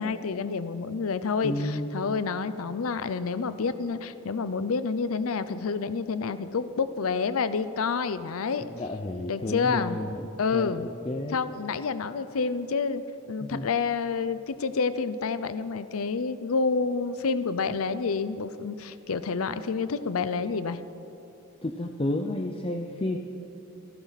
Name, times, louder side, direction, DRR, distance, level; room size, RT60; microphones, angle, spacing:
voice 1, 0.0-8.6 9.3-10.0 10.4-10.9 11.3-13.0 13.3-20.8, left 5 dB, 85° left, 13 dB, 0.6 m, -28 dB
voice 2, 1.4-2.0 8.7-10.3 10.5-11.4 13.4-13.7 21.6-23.2, left 1 dB, 25° left, 4 dB, 0.6 m, -31 dB
28.0 x 11.5 x 4.1 m, 2.8 s
head